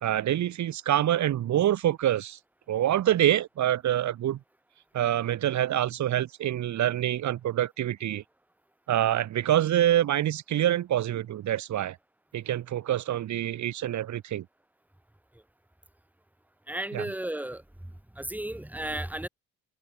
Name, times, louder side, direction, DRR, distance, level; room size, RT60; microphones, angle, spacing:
voice 1, 0.0-2.4 2.7-4.4 4.9-8.2 8.9-12.0 12.3-14.4 16.9-17.0, right 12 dB, 70° right, 1.9 m, -26 dB
voice 2, 16.7-17.6 18.1-19.3, right 1 dB, 5° right, 3.2 m, -34 dB
cardioid pair, 90°, 30 cm